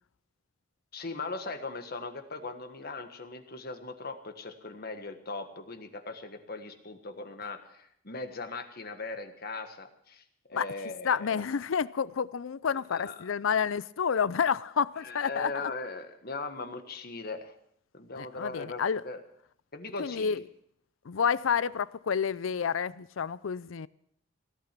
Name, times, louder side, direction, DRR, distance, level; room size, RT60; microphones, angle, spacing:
voice 1, 0.9-10.2 10.5-11.4 12.9-13.3 15.0-17.5 17.9-19.2 19.7-20.4, left 3 dB, 50° left, 1.5 m, -39 dB
voice 2, 11.0-15.7 18.2-19.0 20.0-20.4 21.1-23.9, left 7 dB, 85° left, 0.5 m, -29 dB
17.0 x 12.0 x 6.0 m
head